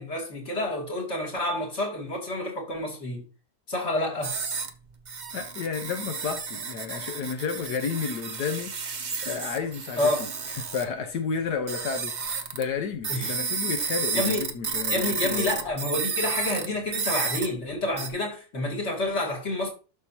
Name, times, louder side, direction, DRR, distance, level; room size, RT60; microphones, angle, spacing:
voice 1, 0.0-3.2 3.7-4.3 10.0-10.2 13.1-13.3 14.1-14.4 14.9-19.7, left 1 dB, 45° left, 2.9 m, -28 dB
sound 1, 4.2-4.7 5.1-10.9 11.7-12.6 13.0-16.7 16.9-17.5 18.0-18.1, right 5 dB, 40° right, 0.7 m, -31 dB
voice 2, 5.3-8.7 9.2-10.0 10.6-12.1 12.5-15.6, left 6 dB, 85° left, 1.6 m, -31 dB
12.0 x 6.3 x 2.8 m
omnidirectional pair, 1.7 m